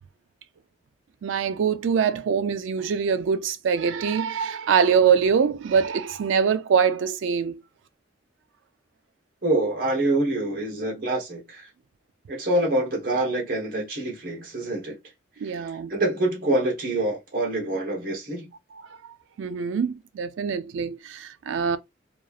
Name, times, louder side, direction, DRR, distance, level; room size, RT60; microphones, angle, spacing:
voice 1, 1.2-7.5 15.4-16.0 19.4-21.8, right 6 dB, 90° right, 0.4 m, -23 dB
voice 2, 9.4-11.6 12.3-15.0 15.9-18.5, right 1 dB, 50° right, 1.0 m, -26 dB
3.0 x 2.3 x 2.3 m
head